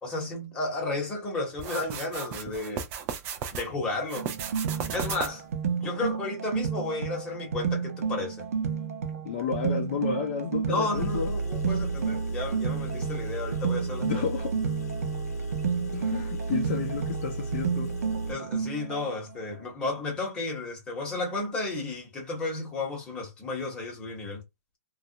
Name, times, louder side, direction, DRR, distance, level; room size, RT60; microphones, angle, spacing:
voice 1, 0.0-2.8 3.5-4.3 4.9-5.5 5.8-8.5 10.6-14.3 18.3-24.4, left 2 dB, 10° left, 1.0 m, -33 dB
sound 1, 1.6-3.7 4.1-5.5, right 8 dB, 25° right, 0.4 m, -35 dB
sound 2, 4.2-19.0, right 6 dB, 65° right, 0.8 m, -31 dB
voice 2, 9.2-11.3 14.0-14.5 15.9-17.9, left 6 dB, 40° left, 0.5 m, -31 dB
Engine, 10.9-18.3, right 2 dB, 80° left, 0.8 m, -34 dB
2.4 x 2.0 x 2.7 m
hypercardioid pair, 160°, 8 cm